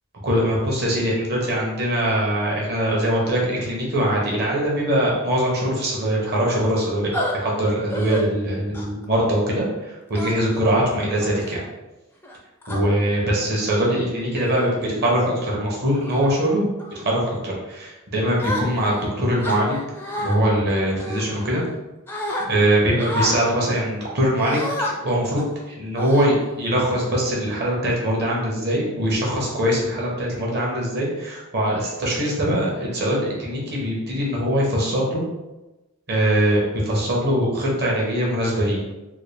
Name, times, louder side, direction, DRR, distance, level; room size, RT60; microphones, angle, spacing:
voice 1, 0.2-11.6 12.7-16.7 16.9-19.8 20.2-21.6 22.4-35.2 36.1-38.8, equal, 50° right, -3 dB, 1.0 m, -22 dB
sound 1, 7.1-7.3 7.9-8.2 8.7-9.0 10.1-10.6 11.2-11.5 12.2-12.8 13.6-13.8 14.3-14.7 15.2-15.4 15.9-16.3 16.8-17.1 18.4-19.0 19.4-20.4 21.0-21.8 22.1-22.4 23.0-23.4 24.4-24.9 25.4-25.5 26.0-26.7, left 1 dB, 10° left, 0.4 m, -30 dB
3.7 x 2.3 x 3.3 m, 1.0 s
head